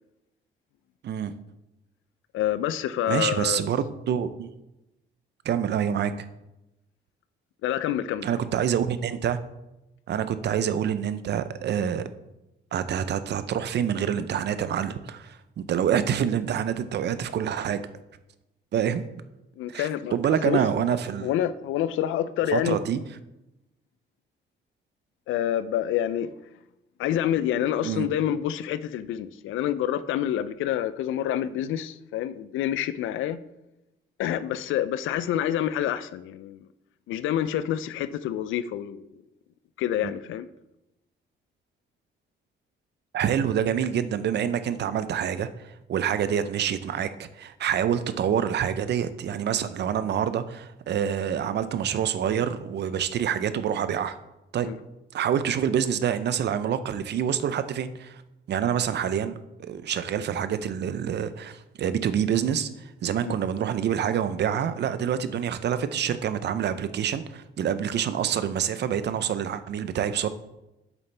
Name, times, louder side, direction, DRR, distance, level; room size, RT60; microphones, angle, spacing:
voice 1, 2.3-3.7 7.6-8.3 19.6-20.1 20.4-20.6 21.2-22.8 25.3-26.3 27.0-33.4 34.2-36.7 37.1-39.1 39.8-40.5 54.6-54.8 63.2-63.3, left 11 dB, 85° left, 0.5 m, -27 dB
voice 2, 3.1-4.5 5.4-6.1 8.2-9.4 10.1-12.1 12.7-17.8 18.7-19.1 19.7-21.3 22.5-23.0 27.8-28.1 40.0-40.1 43.1-47.1 47.3-54.2 54.5-54.7 55.1-58.2 58.5-70.3, right 8 dB, 60° right, 0.6 m, -27 dB
8.2 x 7.1 x 3.4 m
cardioid pair, 90°, 20 cm